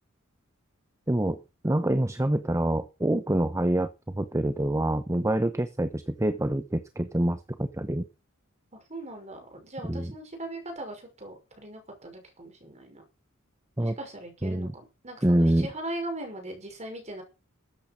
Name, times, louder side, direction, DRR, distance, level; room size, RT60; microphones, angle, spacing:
voice 1, 1.1-1.4 1.6-8.1 9.9-10.1 13.8-14.0 14.4-14.7 15.2-15.7, right 1 dB, 15° right, 11 dB, 0.9 m, -26 dB
voice 2, 8.7-13.0 13.8-17.2, right 1 dB, 35° right, 4 dB, 5.9 m, -39 dB
13.5 x 8.9 x 6.3 m, 0.30 s
head